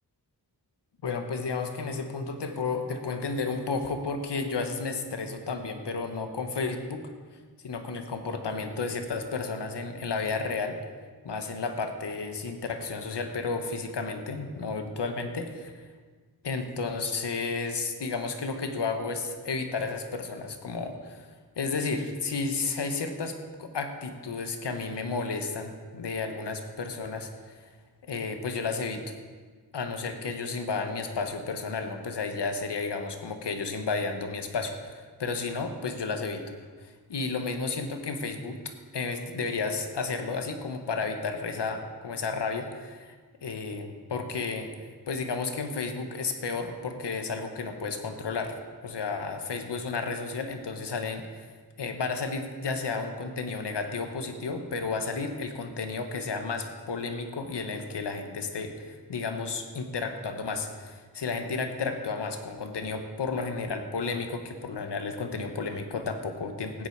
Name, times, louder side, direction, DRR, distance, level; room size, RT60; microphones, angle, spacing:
voice 1, 1.0-7.0 7.6-10.7 11.2-15.9 16.4-21.3 21.6-27.7 28.0-29.1 29.7-36.5 36.8-38.6 38.9-43.1 43.4-44.7 45.1-51.5 51.8-66.9, left 4 dB, 85° left, 6 dB, 1.4 m, -32 dB
15.5 x 10.0 x 4.7 m, 1.5 s
wide cardioid pair, 65°, 40 cm